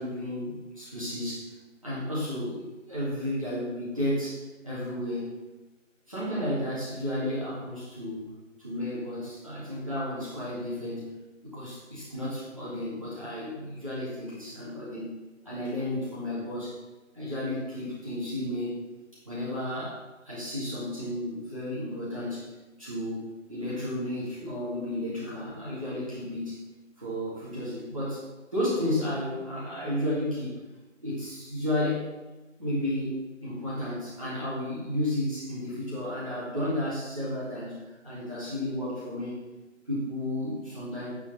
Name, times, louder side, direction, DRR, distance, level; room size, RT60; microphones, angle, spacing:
voice 1, 0.0-1.6 1.8-5.4 6.1-8.3 8.6-11.1 11.5-15.1 15.4-16.8 17.1-18.8 19.3-20.0 20.2-22.5 22.8-23.2 23.5-26.6 27.0-28.2 28.5-30.6 31.0-32.1 32.6-39.4 39.9-41.1, left 1 dB, 25° right, -9 dB, 2.2 m, -32 dB
10.0 x 4.9 x 6.6 m, 1.1 s
figure-of-eight pair, 180°, 39 cm